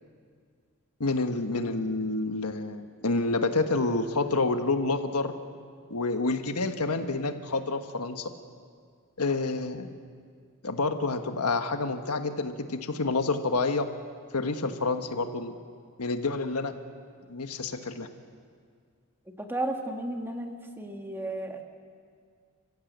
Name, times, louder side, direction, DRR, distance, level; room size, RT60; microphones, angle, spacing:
voice 1, 1.0-5.4 5.9-8.3 9.2-9.9 10.6-13.8 14.3-15.5 16.0-16.7 17.3-18.1, left 3 dB, 90° left, 7 dB, 1.4 m, -28 dB
voice 2, 19.4-21.6, right 1 dB, 10° right, 3 dB, 1.7 m, -33 dB
29.0 x 15.5 x 8.1 m, 2.1 s
head